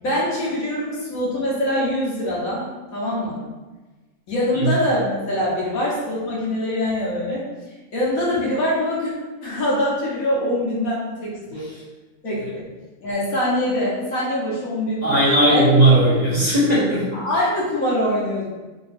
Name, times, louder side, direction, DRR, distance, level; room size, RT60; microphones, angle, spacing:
voice 1, 0.0-3.4 4.3-7.4 7.9-9.1 9.4-11.7 12.2-12.6 13.0-15.2 15.5-15.7 17.1-18.5, left 1 dB, 80° left, -6 dB, 1.5 m, -23 dB
voice 2, 15.0-17.1, right 1 dB, 35° right, -10 dB, 1.0 m, -17 dB
3.7 x 2.9 x 2.5 m, 1.2 s
omnidirectional pair, 1.5 m